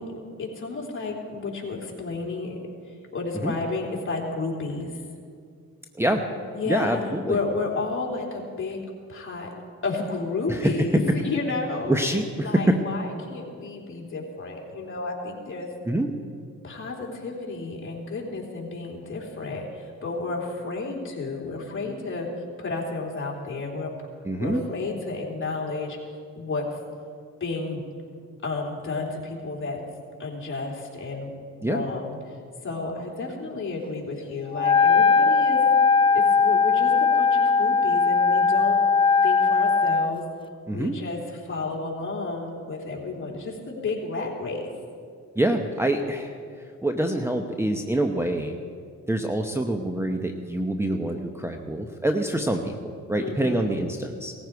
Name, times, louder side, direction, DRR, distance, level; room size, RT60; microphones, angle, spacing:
voice 1, 0.0-2.6 3.1-5.0 6.5-8.8 9.1-9.5 9.8-12.0 12.4-15.7 16.6-22.3 22.6-23.9 24.4-26.7 27.4-27.8 28.4-29.8 30.2-31.3 31.6-32.4 32.6-35.6 36.1-38.8 39.2-40.3 40.7-44.6 53.2-53.7, left 3 dB, 40° left, -1 dB, 3.4 m, -31 dB
voice 2, 6.7-7.4 10.5-10.7 11.9-12.8 15.9-16.1 24.2-24.6 31.6-31.8 40.7-41.0 45.4-46.4 46.8-48.6 49.1-54.3, right 1 dB, 10° right, 5 dB, 0.9 m, -25 dB
Wind instrument woodwind instrument, 34.5-40.2, left 5 dB, 15° left, 0.4 m, -19 dB
18.0 x 14.5 x 4.7 m, 2.2 s
cardioid pair, 90°, 30 cm